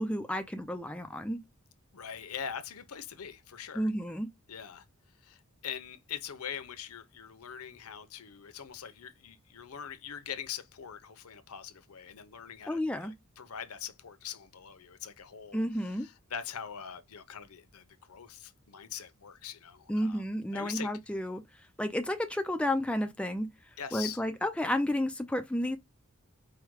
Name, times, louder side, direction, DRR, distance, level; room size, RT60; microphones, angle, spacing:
voice 1, 0.0-1.4 3.7-4.3 12.7-13.1 15.5-16.1 19.9-21.4 21.8-23.5 23.9-25.8, left 1 dB, 5° left, 0.4 m, -31 dB
voice 2, 1.9-3.9 4.5-4.8 5.2-20.2 20.5-20.9 23.8-24.2, left 8 dB, 90° left, 0.7 m, -43 dB
4.8 x 2.1 x 4.7 m
head